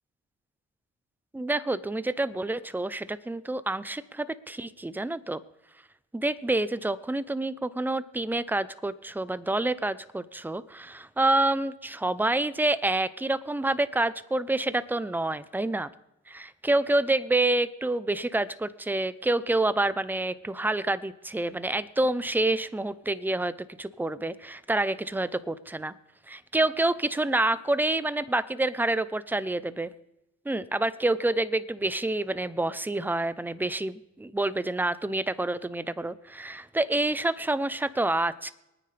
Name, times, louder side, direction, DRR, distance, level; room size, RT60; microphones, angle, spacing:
voice 1, 1.3-5.4 6.1-15.9 16.3-25.9 26.3-29.9 30.5-38.5, right 2 dB, 5° right, 15 dB, 0.6 m, -28 dB
24.5 x 9.6 x 3.4 m, 0.91 s
cardioid pair, 90°, 30 cm